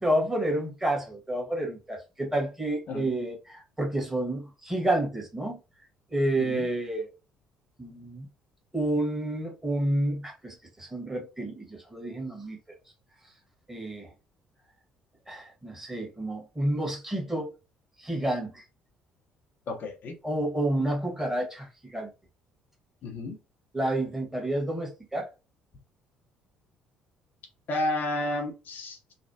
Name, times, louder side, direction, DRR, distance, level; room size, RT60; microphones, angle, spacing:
voice 1, 0.0-5.6 6.1-7.1 7.8-8.3 8.7-12.6 13.7-14.1 15.3-17.5 18.0-18.6 20.2-22.1 23.7-25.3, right 1 dB, 10° right, 1.6 m, -29 dB
voice 2, 19.7-20.1 23.0-23.4 27.7-29.1, left 1 dB, 50° left, 0.9 m, -31 dB
3.3 x 2.3 x 2.8 m
hypercardioid pair, 50°, 4 cm